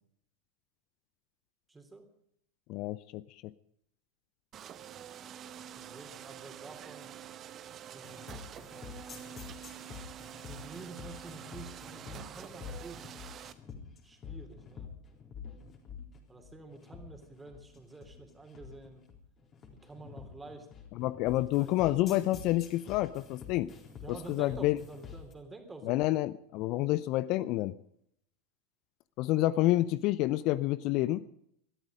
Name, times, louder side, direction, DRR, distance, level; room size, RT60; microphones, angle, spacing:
voice 1, 1.7-2.0 5.8-7.1 7.9-8.4 10.5-13.2 14.0-14.9 16.3-19.0 19.8-20.7 21.4-21.9 24.0-26.1 29.5-29.6, right 3 dB, 15° right, 6 dB, 3.5 m, -49 dB
voice 2, 2.7-3.5 20.9-23.7 24.1-24.8 25.8-27.7 29.2-31.2, left 16 dB, 45° left, 17 dB, 0.6 m, -29 dB
sound 1, 4.5-13.5, right 10 dB, 35° right, 1.0 m, -47 dB
sound 2, 8.0-25.3, left 7 dB, 30° left, 3.9 m, -47 dB
20.5 x 13.0 x 5.1 m, 0.72 s
figure-of-eight pair, 90°, 0 cm